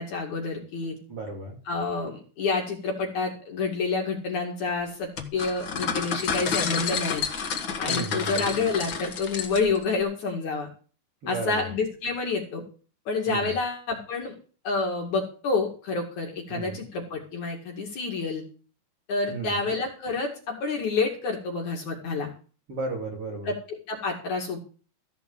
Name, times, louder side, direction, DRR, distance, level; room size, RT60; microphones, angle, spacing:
voice 1, 0.0-1.0 1.7-7.2 7.8-10.7 11.3-12.6 13.1-14.3 14.6-18.4 19.1-22.3 23.5-24.6, left 4 dB, 50° left, 0 dB, 3.3 m, -28 dB
voice 2, 1.1-1.6 7.9-8.5 11.2-11.7 13.3-13.5 16.5-16.8 19.3-19.6 22.7-23.5, right 3 dB, 35° right, -1 dB, 4.0 m, -34 dB
sound 1, 5.2-9.8, left 6 dB, 80° left, 1.0 m, -30 dB
15.0 x 6.0 x 7.3 m, 0.38 s
omnidirectional pair, 4.6 m